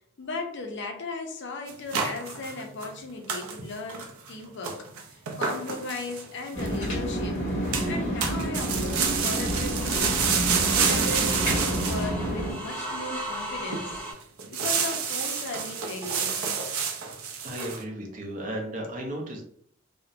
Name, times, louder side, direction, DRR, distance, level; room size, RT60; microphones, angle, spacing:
voice 1, 0.2-10.4 10.7-14.0 14.5-16.6, left 3 dB, 55° left, 3 dB, 0.5 m, -37 dB
sound 1, 1.7-3.0 3.3-3.6 3.9-4.3 4.6-6.8 7.7-8.0 8.2-12.1 12.6-12.7 13.3-13.4 13.7-14.0 14.4-17.8, right 6 dB, 90° right, 0.4 m, -29 dB
sound 2, 6.5-12.5, equal, 30° left, 1.1 m, -29 dB
sound 3, 9.6-14.1, right 1 dB, 5° left, 1.4 m, -37 dB
voice 2, 17.3-19.4, right 1 dB, 40° right, 0 dB, 0.5 m, -35 dB
2.8 x 2.1 x 2.4 m, 0.63 s
head